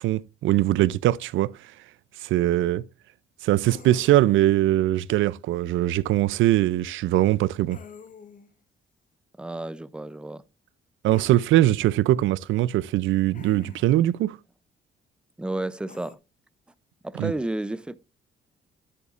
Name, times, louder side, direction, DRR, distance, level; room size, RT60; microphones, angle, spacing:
voice 1, 0.0-1.5 2.2-2.8 3.4-7.8 11.0-14.4 17.2-17.3, right 14 dB, 80° right, 0.4 m, -21 dB
sound 1, 3.6-4.4 7.7-8.5 11.1-11.5 13.3-14.0 15.9-16.2, left 6 dB, 40° left, 0.9 m, -46 dB
voice 2, 9.4-10.4 15.4-16.2 17.0-18.0, right 1 dB, 5° right, 0.4 m, -31 dB
10.0 x 8.0 x 2.4 m
cardioid pair, 90°, 20 cm